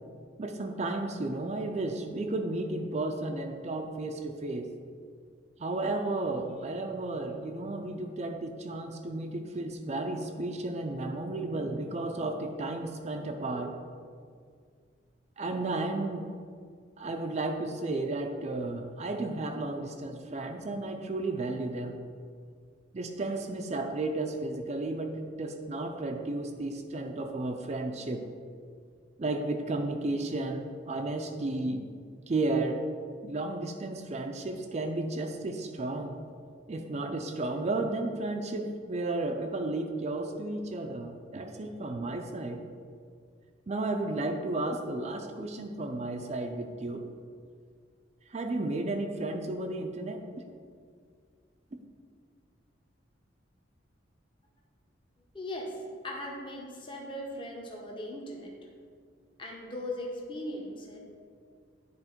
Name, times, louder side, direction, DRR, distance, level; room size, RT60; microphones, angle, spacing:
voice 1, 0.4-4.7 5.6-13.8 15.4-16.3 17.0-22.0 22.9-28.3 29.2-31.8 32.3-32.8 33.2-36.2 36.7-42.6 43.7-47.1 48.3-50.2, right 2 dB, 35° right, 4 dB, 0.4 m, -33 dB
voice 2, 55.3-55.8 56.0-58.5 59.4-61.0, left 1 dB, 25° left, -2 dB, 0.9 m, -38 dB
10.0 x 3.5 x 4.4 m, 2.1 s
head